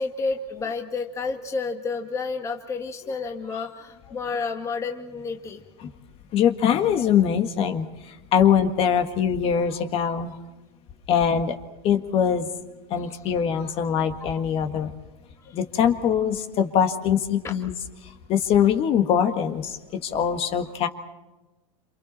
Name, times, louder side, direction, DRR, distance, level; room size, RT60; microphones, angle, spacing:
voice 1, 0.0-5.6 17.4-17.5, left 4 dB, 15° left, 4 dB, 1.6 m, -30 dB
voice 2, 6.3-10.4 11.1-11.6 11.8-12.5 12.9-14.9 15.5-17.7 18.0-20.9, left 8 dB, 35° left, 7 dB, 1.7 m, -23 dB
28.5 x 27.5 x 4.3 m, 1.1 s
supercardioid pair, 130°, 17 cm